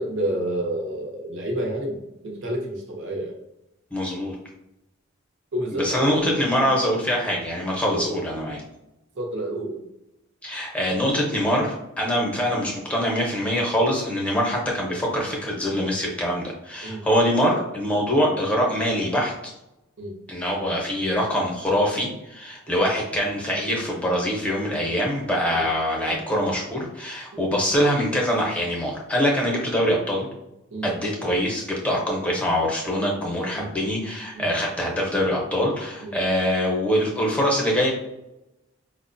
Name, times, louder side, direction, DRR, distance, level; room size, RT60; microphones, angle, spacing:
voice 1, 0.0-2.0 2.2-3.4 5.5-6.8 7.9-8.0 9.2-9.8 16.8-17.0 20.0-20.2 22.7-22.8 25.5-25.6 27.3-27.5 30.7-30.9 33.5-33.7 34.3-34.5 36.0-36.2, right 1 dB, 65° right, 0 dB, 0.7 m, -29 dB
voice 2, 3.9-4.3 5.7-8.6 10.4-19.5 20.3-30.3 30.8-37.9, equal, 5° left, -2 dB, 0.7 m, -24 dB
4.6 x 2.1 x 2.5 m, 0.89 s
head